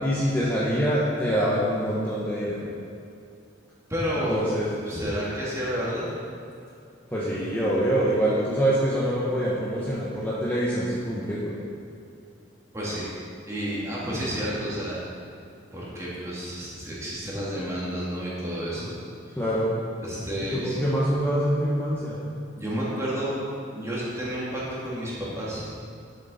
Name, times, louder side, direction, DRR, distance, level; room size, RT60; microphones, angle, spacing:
voice 1, 0.0-2.6 4.3-4.7 7.1-11.5 19.4-19.7 20.5-22.2, equal, 10° left, -8 dB, 1.3 m, -25 dB
voice 2, 3.9-4.4 4.8-6.1 12.7-13.1 13.5-15.0 15.7-18.9 20.0-20.8 22.6-23.3 23.7-25.6, equal, 15° right, -8 dB, 2.7 m, -30 dB
11.5 x 7.8 x 4.2 m, 2.5 s
head